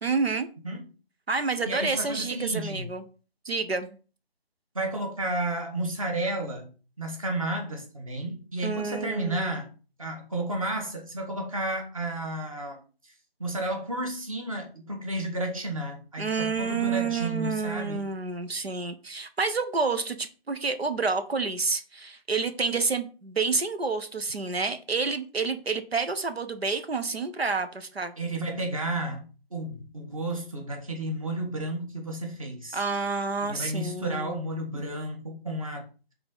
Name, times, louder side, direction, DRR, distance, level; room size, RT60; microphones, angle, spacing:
voice 1, 0.0-0.5 1.3-3.0 3.4-3.9 8.6-9.6 16.2-28.1 32.7-34.4 34.7-34.8, right 4 dB, 85° right, 1.2 m, -29 dB
voice 2, 1.7-2.9 4.7-6.7 7.0-9.7 10.0-13.1 13.4-18.1 28.2-32.8 33.4-35.9, right 1 dB, 35° right, 1.8 m, -32 dB
5.8 x 4.0 x 5.6 m
figure-of-eight pair, 170°, 30 cm